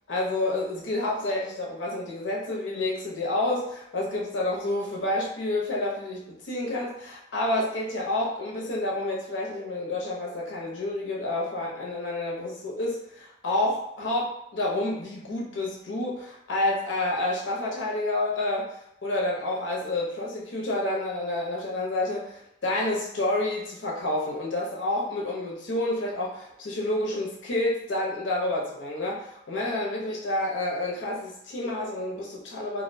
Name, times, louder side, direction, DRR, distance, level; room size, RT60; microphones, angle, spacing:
voice 1, 0.1-18.7 19.0-32.8, left 2 dB, 65° left, -3 dB, 0.6 m, -29 dB
2.5 x 2.1 x 2.6 m, 0.76 s
head